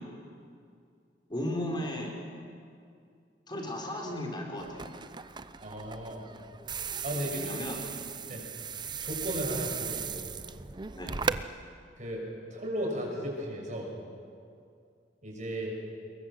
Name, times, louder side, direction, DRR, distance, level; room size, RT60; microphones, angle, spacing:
voice 1, 1.3-2.1 3.5-4.9 7.1-8.4 11.0-11.1, left 1 dB, 25° left, 0 dB, 4.8 m, -36 dB
sound 1, 4.6-11.4, right 6 dB, 25° right, 0.6 m, -37 dB
voice 2, 5.6-6.2 7.0-7.5 8.3-8.4 9.0-10.2 12.0-12.2 12.5-13.9 15.2-15.7, equal, 45° right, -1 dB, 6.8 m, -35 dB
27.0 x 22.5 x 7.7 m, 2.3 s
head